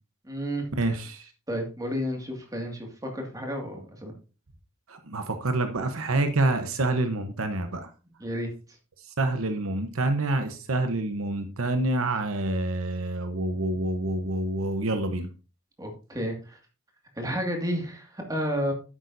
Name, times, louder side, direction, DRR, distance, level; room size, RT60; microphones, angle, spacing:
voice 1, 0.2-1.0 1.5-4.1 8.2-8.5 15.8-16.6 17.2-18.7, equal, 15° right, 2 dB, 2.1 m, -31 dB
voice 2, 0.8-1.3 4.9-7.9 9.2-15.3, right 2 dB, 70° right, 7 dB, 1.0 m, -27 dB
10.5 x 8.8 x 2.7 m, 0.33 s
head